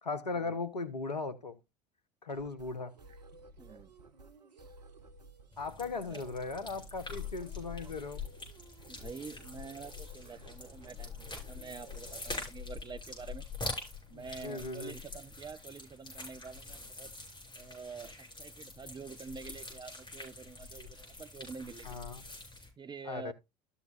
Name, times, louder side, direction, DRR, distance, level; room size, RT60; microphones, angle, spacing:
voice 1, 0.0-1.6 2.2-2.9 5.6-8.2 14.1-14.9 21.8-22.2 23.1-23.3, left 3 dB, 85° left, 1.0 m, -38 dB
sound 1, 2.3-12.5, right 2 dB, 80° right, 1.0 m, -55 dB
voice 2, 3.6-3.9 6.1-6.2 8.9-13.5 14.1-17.1 17.6-22.0 22.8-23.3, right 5 dB, 20° right, 0.8 m, -47 dB
sound 2, 5.5-22.7, left 3 dB, 20° left, 6.0 m, -45 dB
13.0 x 6.9 x 2.4 m
figure-of-eight pair, 70°, 21 cm